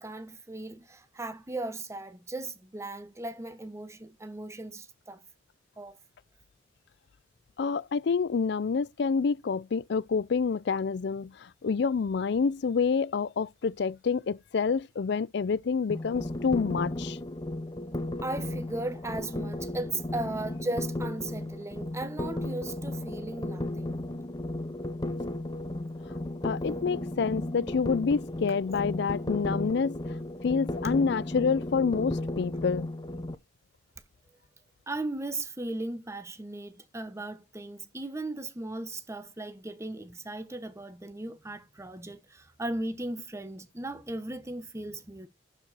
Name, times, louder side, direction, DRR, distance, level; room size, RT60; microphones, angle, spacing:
voice 1, 0.0-5.2 5.8-6.0 18.2-24.0 34.9-45.3, right 2 dB, 15° right, 1.1 m, -37 dB
voice 2, 7.6-17.2 26.4-30.0 30.4-32.9, left 5 dB, 65° left, 0.4 m, -28 dB
sound 1, 15.9-33.4, left 1 dB, 25° left, 0.8 m, -34 dB
11.5 x 5.0 x 4.1 m
head